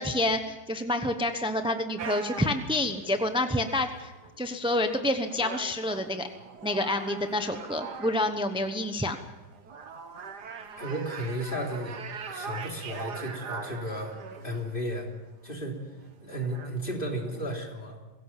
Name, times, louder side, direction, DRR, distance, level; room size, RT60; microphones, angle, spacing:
voice 1, 0.0-4.1 4.4-6.3 6.6-9.2, left 1 dB, 5° right, 7 dB, 0.5 m, -28 dB
sound 1, 2.0-17.6, right 6 dB, 60° right, 1.9 m, -43 dB
voice 2, 10.8-12.0 12.3-14.2 14.4-15.1 15.4-18.0, equal, 25° left, 1 dB, 3.5 m, -34 dB
22.5 x 16.5 x 7.4 m, 1.2 s
omnidirectional pair, 2.1 m